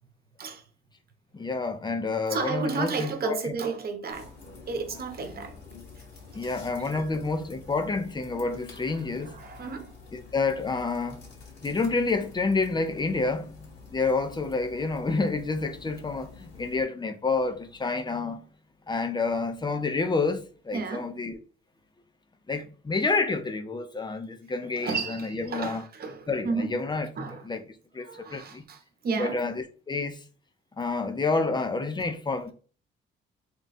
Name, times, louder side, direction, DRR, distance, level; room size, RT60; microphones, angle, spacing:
voice 1, 1.3-3.5 6.3-9.4 10.1-11.2 11.6-18.4 18.9-21.4 22.5-25.8 26.3-27.1 27.4-27.6 27.9-28.6 29.2-30.2 30.8-32.5, left 3 dB, 20° left, 0.7 m, -29 dB
voice 2, 2.3-4.3 4.7-5.5 6.0-6.1 6.3-7.1 8.9-9.9 20.7-21.1 24.8-26.7 27.2-27.5 28.0-29.5, right 4 dB, 50° right, 1.1 m, -33 dB
sound 1, 4.1-16.8, left 4 dB, 60° left, 2.1 m, -48 dB
3.7 x 2.3 x 4.1 m
cardioid pair, 90°, 20 cm